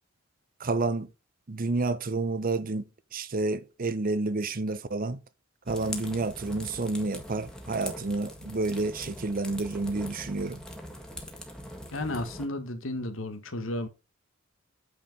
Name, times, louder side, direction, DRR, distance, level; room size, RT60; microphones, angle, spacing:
voice 1, 0.6-1.1 1.5-5.2 5.7-10.6, right 3 dB, 45° right, 0.8 m, -30 dB
sound 1, 5.6-12.5, left 1 dB, 5° left, 1.7 m, -42 dB
voice 2, 11.9-13.9, left 1 dB, 90° left, 1.5 m, -33 dB
8.8 x 4.9 x 5.2 m
head